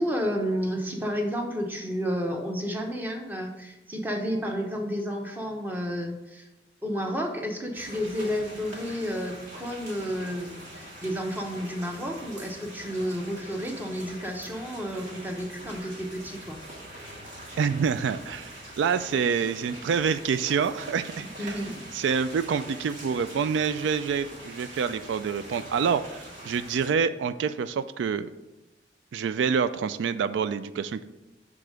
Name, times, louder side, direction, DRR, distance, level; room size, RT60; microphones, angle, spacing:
voice 1, 0.0-6.5 6.8-16.6 21.2-21.8, equal, 10° right, 2 dB, 0.8 m, -31 dB
sound 1, 7.7-26.9, right 1 dB, 45° right, 1.6 m, -43 dB
voice 2, 17.6-18.5 18.8-21.7 21.9-28.3 29.1-31.0, right 6 dB, 85° right, 13 dB, 0.3 m, -27 dB
6.8 x 3.6 x 6.3 m, 1.0 s
head